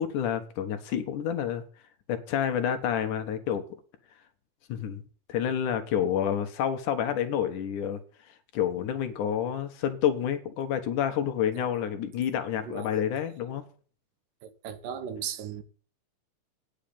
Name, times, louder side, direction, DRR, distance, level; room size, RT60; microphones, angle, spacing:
voice 1, 0.0-1.6 2.1-3.7 4.7-5.0 5.3-8.0 8.3-13.6, left 9 dB, 70° left, 2.5 m, -29 dB
voice 2, 14.4-15.6, right 8 dB, 75° right, 2.5 m, -37 dB
9.1 x 6.4 x 8.6 m
omnidirectional pair, 3.9 m